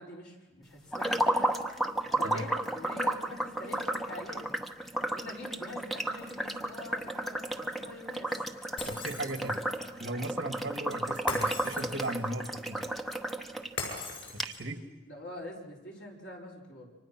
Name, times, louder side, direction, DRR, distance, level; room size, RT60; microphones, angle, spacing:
voice 1, 0.0-1.5 2.0-4.5 5.1-8.3 15.1-16.9, left 1 dB, 60° left, -2 dB, 4.9 m, -44 dB
sound 1, 0.9-13.7 14.0-14.1 14.4-14.5, right 1 dB, ahead, 0.9 m, -33 dB
Shatter, 8.8-9.7 11.3-12.3 13.8-14.8, left 4 dB, 90° left, 7.2 m, -39 dB
voice 2, 8.9-9.6 10.0-12.9 14.3-14.8, right 1 dB, 65° right, 7 dB, 1.9 m, -37 dB
29.5 x 24.5 x 6.1 m, 1.1 s
head